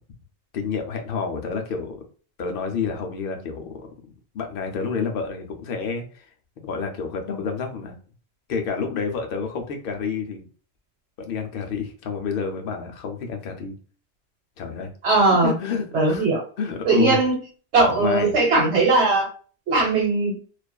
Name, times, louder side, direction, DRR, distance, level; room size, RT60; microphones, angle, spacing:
voice 1, 0.5-2.0 2.4-6.3 6.6-7.9 8.5-10.5 11.2-13.7 14.6-14.9 15.4-16.3 16.6-17.2 17.8-18.3, left 5 dB, 60° left, 4 dB, 0.7 m, -29 dB
voice 2, 15.0-15.5 15.9-16.4 16.8-17.3 17.7-19.3 19.7-20.4, right 3 dB, 90° right, 0 dB, 1.3 m, -19 dB
2.4 x 2.4 x 2.2 m, 0.41 s
omnidirectional pair, 1.1 m